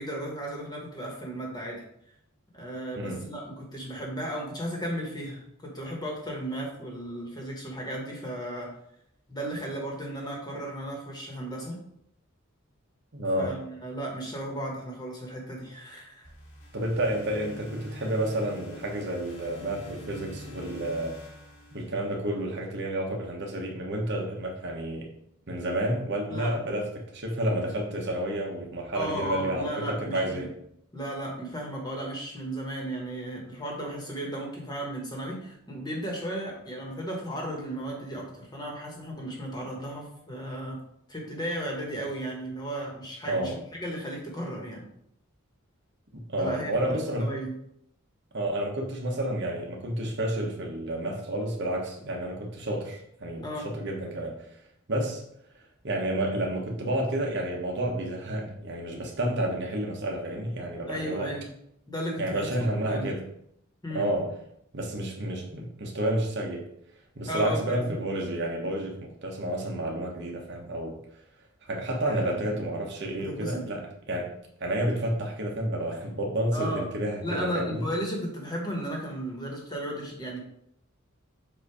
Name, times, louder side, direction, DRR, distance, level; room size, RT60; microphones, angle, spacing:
voice 1, 0.0-1.8 2.5-8.7 9.3-11.8 13.4-16.3 26.3-26.5 28.9-30.4 30.9-40.8 41.1-44.8 46.4-47.5 53.4-53.7 60.9-61.5 61.9-62.5 62.9-63.1 63.8-64.1 67.3-67.9 72.0-72.5 73.2-73.6 76.5-76.8 77.2-80.4, right 1 dB, 20° left, -1 dB, 1.4 m, -35 dB
voice 2, 3.0-3.3 13.1-13.6 16.7-21.2 21.7-25.1 25.5-30.5 43.3-43.6 46.1-47.2 48.3-54.5 54.9-55.2 55.8-61.3 62.2-63.3 63.9-64.3 64.7-66.7 67.1-71.0 71.6-74.3 74.6-77.9, right 1 dB, 55° right, 1 dB, 1.1 m, -30 dB
sound 1, 16.2-22.4, left 1 dB, 70° left, 1.7 m, -46 dB
7.5 x 2.7 x 4.8 m, 0.74 s
head